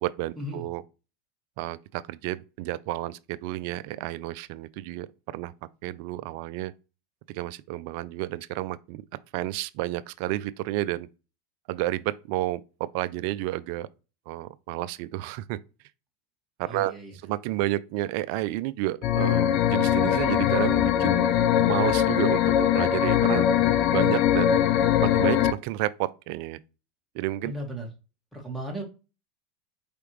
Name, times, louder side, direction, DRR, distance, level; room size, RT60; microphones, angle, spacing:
voice 1, 0.0-0.8 1.6-5.1 5.3-5.5 5.8-6.7 7.3-9.0 9.3-11.1 11.7-13.9 14.3-15.6 16.6-16.9 17.2-21.3 21.6-23.4 23.9-24.5 25.0-26.6 27.1-27.5, right 16 dB, 60° right, 0.4 m, -31 dB
voice 2, 16.7-17.1 27.4-27.9 28.3-28.8, right 1 dB, ahead, 1.8 m, -35 dB
sound 1, 19.0-25.5, left 10 dB, 50° left, 0.5 m, -22 dB
4.7 x 3.3 x 3.1 m
hypercardioid pair, 110°, 0 cm